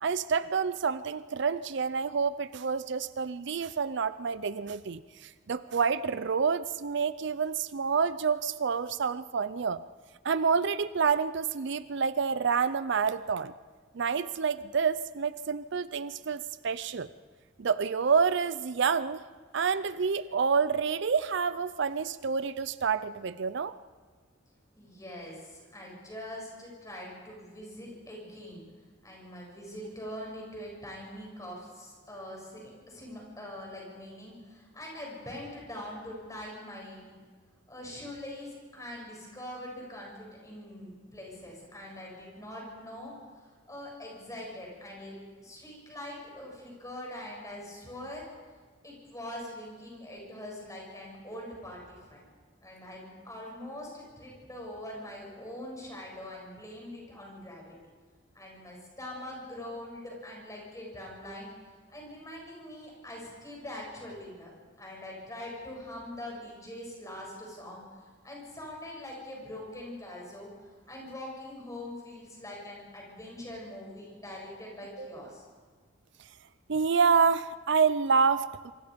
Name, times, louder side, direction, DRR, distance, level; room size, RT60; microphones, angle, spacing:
voice 1, 0.0-9.8 10.2-13.5 13.9-17.1 17.6-19.2 19.5-23.7 75.0-75.2 76.7-78.7, right 5 dB, 65° right, 15 dB, 0.6 m, -28 dB
voice 2, 24.8-28.6 29.0-37.2 37.7-43.1 43.7-48.3 48.8-52.2 52.6-57.7 58.3-61.5 61.9-67.8 68.2-70.5 70.9-75.5, left 1 dB, 15° left, -2 dB, 7.7 m, -43 dB
26.0 x 24.5 x 5.2 m, 1.5 s
head